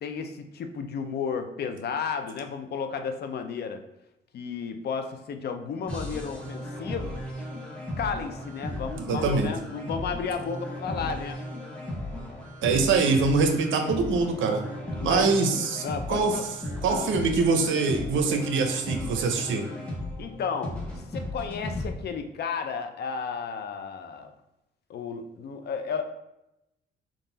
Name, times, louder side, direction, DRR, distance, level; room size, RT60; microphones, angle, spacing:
voice 1, 0.0-3.8 4.3-7.2 8.0-11.4 15.0-15.4 15.8-16.4 16.9-17.1 20.2-24.3 24.9-26.0, left 6 dB, 55° left, 7 dB, 0.5 m, -33 dB
sound 1, 5.9-21.9, left 1 dB, 5° left, 1.0 m, -36 dB
voice 2, 9.1-9.5 12.6-14.6 15.0-16.4 16.8-19.7, right 4 dB, 75° right, 5 dB, 0.6 m, -24 dB
3.8 x 2.5 x 3.9 m, 0.87 s
cardioid pair, 90°, 20 cm